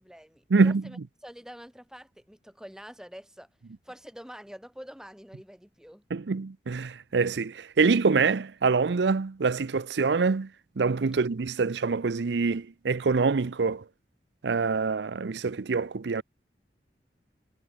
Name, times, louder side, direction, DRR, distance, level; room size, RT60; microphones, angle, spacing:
voice 1, 0.0-3.5 3.8-6.0, equal, 5° right, 3.7 m, -46 dB
voice 2, 0.5-0.8 6.1-10.5 10.8-13.8 14.4-16.2, right 4 dB, 75° right, 0.6 m, -25 dB
head